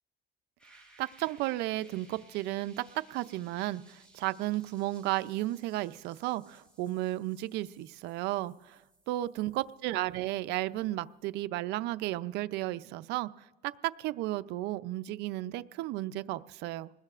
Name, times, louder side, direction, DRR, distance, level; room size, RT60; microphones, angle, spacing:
sound 1, 0.6-11.3, right 2 dB, 5° left, 7.5 m, -62 dB
voice 1, 1.0-8.8 9.1-13.3 14.0-16.9, right 16 dB, 90° right, 14 dB, 0.5 m, -33 dB
26.0 x 20.0 x 2.4 m, 1.0 s
cardioid pair, 110°, 17 cm